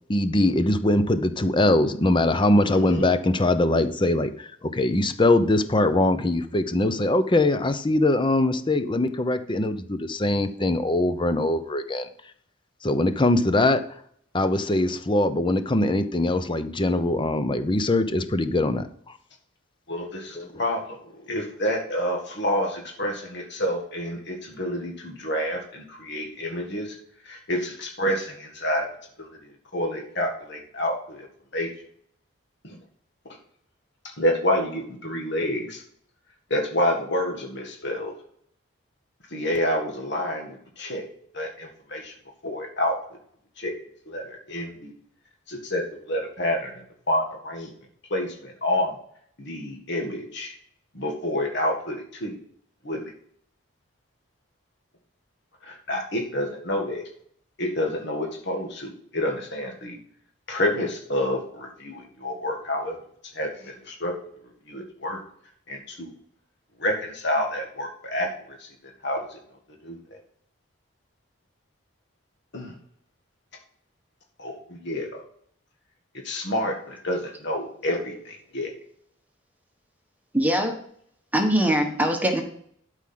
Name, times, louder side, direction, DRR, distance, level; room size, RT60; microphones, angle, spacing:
voice 1, 0.1-12.1 12.8-13.8 14.3-18.9 20.4-20.5, left 1 dB, 25° left, 11 dB, 0.7 m, -22 dB
voice 2, 2.6-3.1 19.9-27.0 27.3-28.9 29.2-29.3 29.7-31.3 31.5-31.7 32.6-32.8 34.2-35.8 36.5-38.1 39.3-41.1 41.3-42.1 42.4-43.0 43.6-43.7 44.1-44.9 45.5-46.7 47.1-47.7 48.1-49.0 49.4-50.6 50.9-52.3 52.8-53.1 55.6-57.0 57.6-60.0 60.5-63.0 63.3-64.1 64.7-65.2 65.7-66.1 66.8-68.7 69.0-69.4 69.8-70.0 72.5-72.7 74.4-75.2 76.2-78.7, left 1 dB, 60° left, 2 dB, 1.8 m, -28 dB
voice 3, 80.3-80.7 81.3-82.4, right 1 dB, 10° right, 3 dB, 1.4 m, -22 dB
12.5 x 4.9 x 6.0 m, 0.64 s
head